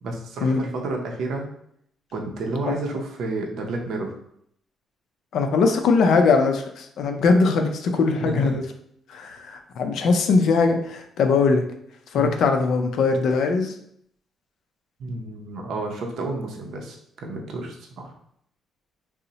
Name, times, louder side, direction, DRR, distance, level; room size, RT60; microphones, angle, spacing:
voice 1, 0.0-1.5 2.1-4.2 8.2-8.6 12.1-12.3 15.0-18.1, right 2 dB, 75° right, 1 dB, 0.5 m, -30 dB
voice 2, 5.3-8.6 9.1-11.6 12.1-13.7, left 4 dB, 70° left, 5 dB, 0.4 m, -20 dB
2.7 x 2.0 x 3.9 m, 0.70 s
cardioid pair, 90°, 0 cm